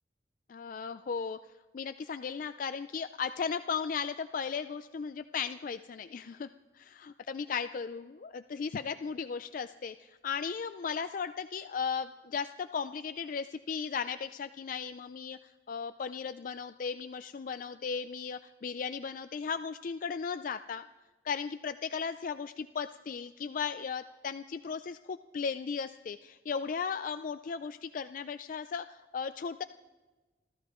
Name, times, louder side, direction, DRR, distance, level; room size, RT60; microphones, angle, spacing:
voice 1, 0.5-1.4 1.7-20.9 21.2-29.6, left 6 dB, 50° left, 10 dB, 0.4 m, -36 dB
28.5 x 14.0 x 3.0 m, 1.2 s
head